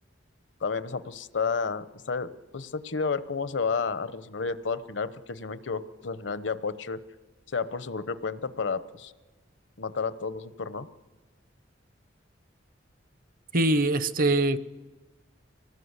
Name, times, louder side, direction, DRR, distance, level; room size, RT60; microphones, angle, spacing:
voice 1, 0.6-7.0 7.5-9.1 9.8-10.9, left 5 dB, 70° left, 14 dB, 0.9 m, -31 dB
voice 2, 13.5-14.6, right 2 dB, 50° right, 14 dB, 0.8 m, -23 dB
24.5 x 18.5 x 8.2 m, 1.2 s
head